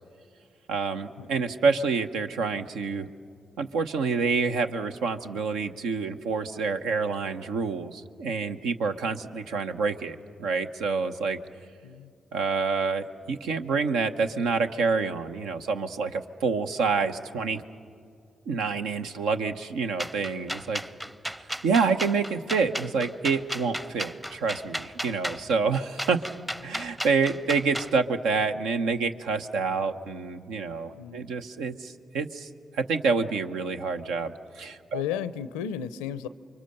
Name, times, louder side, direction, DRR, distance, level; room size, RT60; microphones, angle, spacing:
voice 1, 0.7-3.1 3.6-11.4 12.3-17.6 18.5-20.8 21.6-26.2 26.6-35.0, right 4 dB, 80° right, 6 dB, 0.8 m, -27 dB
sound 1, 20.0-27.9, equal, 10° right, 0.7 m, -34 dB
voice 2, 30.9-31.3 34.9-36.3, left 9 dB, 90° left, 15 dB, 0.5 m, -34 dB
29.0 x 24.0 x 6.6 m, 2.3 s
hypercardioid pair, 40°, 0 cm